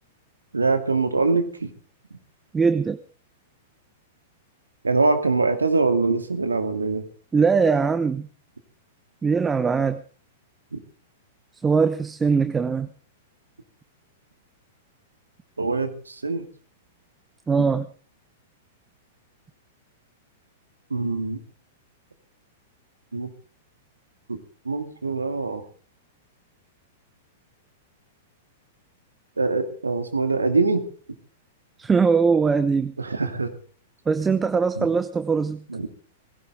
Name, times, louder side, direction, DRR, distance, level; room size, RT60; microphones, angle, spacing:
voice 1, 0.5-1.7 4.8-7.0 10.7-10.8 15.6-16.5 20.9-21.4 23.1-23.3 24.3-24.4 24.6-25.6 29.4-30.8 33.0-33.5 34.7-34.9 35.7-35.9, right 3 dB, 80° right, 7 dB, 2.5 m, -23 dB
voice 2, 2.5-3.0 7.3-8.3 9.2-10.0 11.6-12.9 17.5-17.8 31.8-32.9 34.1-35.6, right 5 dB, 15° right, 12 dB, 0.9 m, -21 dB
20.0 x 16.5 x 3.9 m, 0.41 s
figure-of-eight pair, 100°, 0 cm